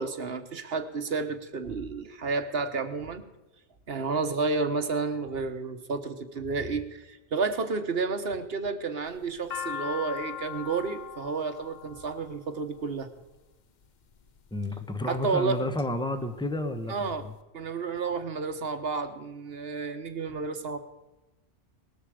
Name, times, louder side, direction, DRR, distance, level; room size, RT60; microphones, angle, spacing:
voice 1, 0.0-3.2 3.9-13.1 15.1-15.7 16.9-17.2 17.5-20.8, right 4 dB, 60° right, 9 dB, 1.4 m, -31 dB
sound 1, 9.1-13.3 14.1-14.6 15.2-15.9 16.2-16.3 16.5-17.3, left 9 dB, 45° left, 0.7 m, -39 dB
voice 2, 14.5-17.3, left 1 dB, 5° left, 8 dB, 1.1 m, -31 dB
19.0 x 13.5 x 5.0 m, 1.0 s
omnidirectional pair, 1.2 m